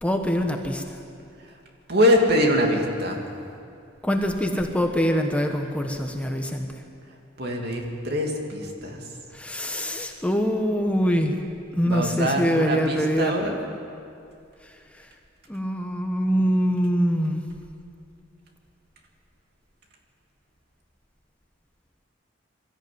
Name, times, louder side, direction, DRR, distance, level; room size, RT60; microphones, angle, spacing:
voice 1, 0.0-1.0 4.0-6.7 9.3-11.4 11.7-13.6 14.6-15.1 15.5-17.4, equal, 5° left, 3 dB, 1.1 m, -24 dB
voice 2, 1.9-3.2 7.4-9.0 11.8-13.6, equal, 55° right, 1 dB, 2.8 m, -23 dB
22.5 x 14.0 x 9.4 m, 2.5 s
head